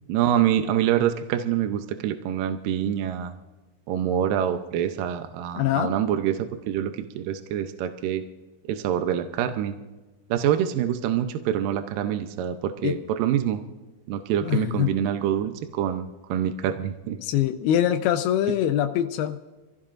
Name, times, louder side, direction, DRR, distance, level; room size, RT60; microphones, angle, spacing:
voice 1, 0.1-3.3 3.9-8.2 8.7-9.8 10.3-13.6 14.1-17.2, right 10 dB, 75° right, 7 dB, 2.2 m, -26 dB
voice 2, 5.6-5.9 12.8-13.0 14.4-14.9 17.2-19.4, left 11 dB, 85° left, 6 dB, 2.6 m, -23 dB
27.5 x 16.0 x 2.6 m, 1.2 s
omnidirectional pair, 4.4 m